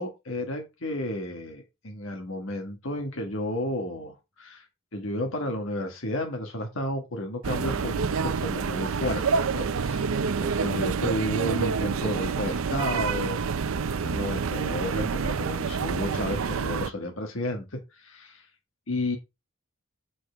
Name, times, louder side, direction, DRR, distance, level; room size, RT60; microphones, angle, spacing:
voice 1, 0.0-4.7 4.9-13.4 13.9-18.5 18.9-19.2, left 1 dB, 70° left, 3 dB, 1.7 m, -32 dB
sound 1, 7.4-16.9, right 5 dB, 80° right, 0.6 m, -28 dB
7.6 x 7.0 x 3.5 m, 0.24 s
head